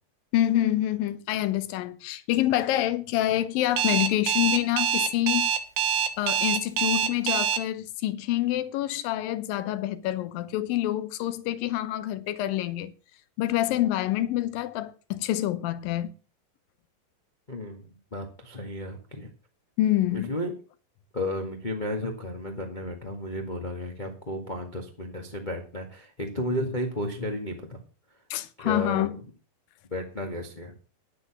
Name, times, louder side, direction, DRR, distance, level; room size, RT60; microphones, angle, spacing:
voice 1, 0.3-5.5 6.2-12.9 13.4-16.1 19.8-20.3 28.3-29.1, left 13 dB, 75° left, 2.5 m, -27 dB
Alarm, 3.8-7.6, right 8 dB, 65° right, 2.6 m, -25 dB
voice 2, 17.5-19.3 20.1-20.5 21.1-27.8 28.6-29.1 29.9-30.7, left 1 dB, 60° left, 0.4 m, -33 dB
10.5 x 9.1 x 6.0 m
omnidirectional pair, 4.3 m